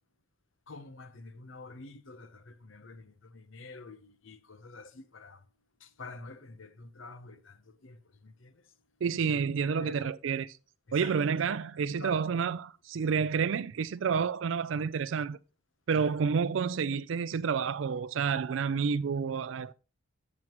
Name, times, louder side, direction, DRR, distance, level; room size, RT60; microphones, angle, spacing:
voice 1, 0.7-5.4 5.8-8.6 9.2-10.1 10.9-11.6 12.0-12.4 16.0-16.1, left 3 dB, 75° left, 0.9 m, -48 dB
voice 2, 9.0-10.6 10.9-15.4 15.9-19.7, right 6 dB, 70° right, 0.4 m, -29 dB
13.5 x 7.4 x 3.0 m
head